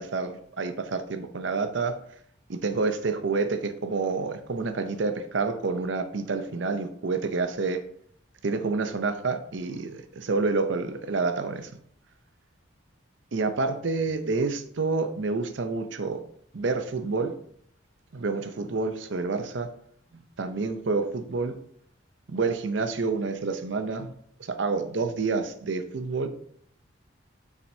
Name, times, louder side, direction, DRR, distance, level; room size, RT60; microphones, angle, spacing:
voice 1, 0.0-2.0 2.5-7.8 8.4-11.7 13.3-16.2 16.5-17.3 18.1-19.7 20.1-21.5 22.3-24.1 24.4-26.3, right 4 dB, 70° right, 8 dB, 0.6 m, -28 dB
7.6 x 6.0 x 2.7 m, 0.66 s
head